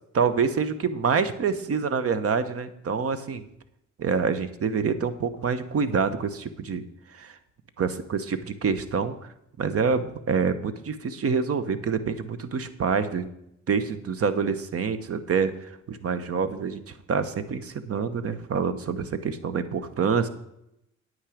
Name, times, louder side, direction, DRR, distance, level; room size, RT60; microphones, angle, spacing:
voice 1, 0.1-3.4 4.0-6.8 7.1-7.4 7.8-9.1 9.6-13.3 13.7-20.3, right 5 dB, 50° right, 13 dB, 1.1 m, -26 dB
9.7 x 9.0 x 5.0 m, 0.79 s
cardioid pair, 90°, 30 cm